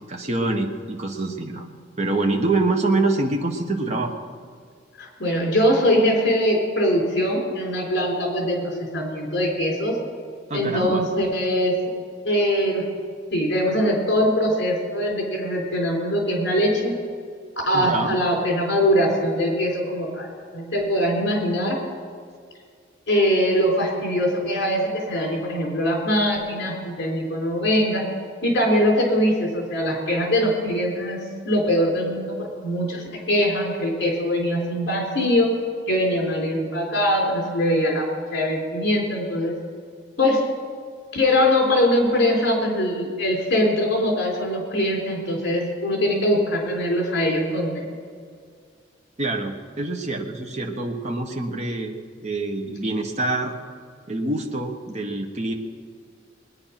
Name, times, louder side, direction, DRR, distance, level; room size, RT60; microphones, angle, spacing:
voice 1, 0.1-1.7 2.0-4.1 10.5-11.0 17.7-18.2 49.2-51.9 52.2-53.5 54.1-55.5, right 2 dB, 35° right, 2 dB, 1.3 m, -25 dB
voice 2, 5.0-10.0 10.5-11.8 12.2-12.8 13.3-16.9 17.7-20.3 20.5-21.8 23.1-28.0 28.4-35.5 35.9-38.1 38.3-39.5 40.2-40.4 41.1-47.8, equal, 60° left, 0 dB, 3.8 m, -22 dB
20.5 x 9.7 x 5.9 m, 2.1 s
head